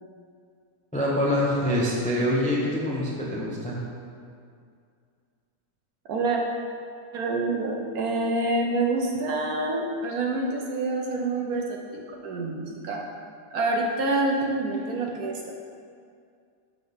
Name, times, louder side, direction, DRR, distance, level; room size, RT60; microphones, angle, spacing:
voice 1, 0.9-3.8, left 1 dB, 10° left, -5 dB, 0.4 m, -25 dB
voice 2, 6.1-6.4 7.1-13.0 13.5-15.5, right 2 dB, 65° right, 0 dB, 1.0 m, -27 dB
6.3 x 5.9 x 3.5 m, 2.3 s
omnidirectional pair, 1.9 m